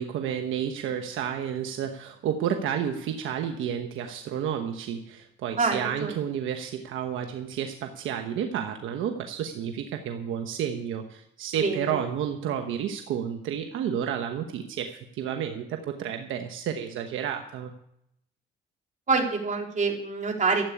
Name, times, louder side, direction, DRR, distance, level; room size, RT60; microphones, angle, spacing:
voice 1, 0.0-17.7, right 8 dB, 85° right, 5 dB, 1.1 m, -31 dB
voice 2, 5.6-6.1 11.6-11.9 19.1-20.7, right 4 dB, 40° right, 0 dB, 3.9 m, -26 dB
13.5 x 8.4 x 8.5 m, 0.75 s
cardioid pair, 90°, 20 cm